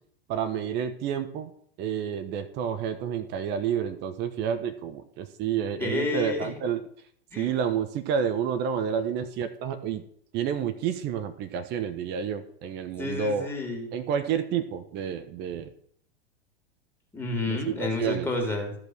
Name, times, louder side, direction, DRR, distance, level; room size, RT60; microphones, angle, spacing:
voice 1, 0.3-1.5 1.8-6.9 7.4-10.0 10.3-13.5 13.9-15.7 17.5-18.3, right 8 dB, 30° right, 10 dB, 1.1 m, -29 dB
voice 2, 5.8-6.5 7.3-7.5 13.0-13.9 17.1-18.7, left 2 dB, 5° left, 0 dB, 3.1 m, -30 dB
13.5 x 5.5 x 6.4 m, 0.65 s
figure-of-eight pair, 95°, 32 cm